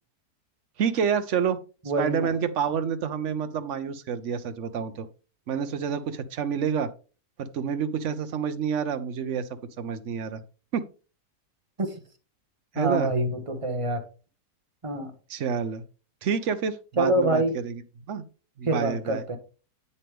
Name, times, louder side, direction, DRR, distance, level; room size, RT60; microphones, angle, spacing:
voice 1, 0.8-1.6 2.0-5.1 5.5-6.9 7.4-9.5 9.8-10.4 10.7-10.8 12.7-13.1 15.3-15.8 16.2-17.8 18.1-18.2 18.6-19.2, right 7 dB, 55° right, 11 dB, 0.9 m, -28 dB
voice 2, 1.9-2.3 11.8-11.9 12.7-14.0 14.8-15.1 17.0-17.5 18.6-19.4, right 1 dB, 20° right, 6 dB, 1.2 m, -25 dB
8.6 x 6.7 x 3.5 m, 0.35 s
omnidirectional pair, 1.7 m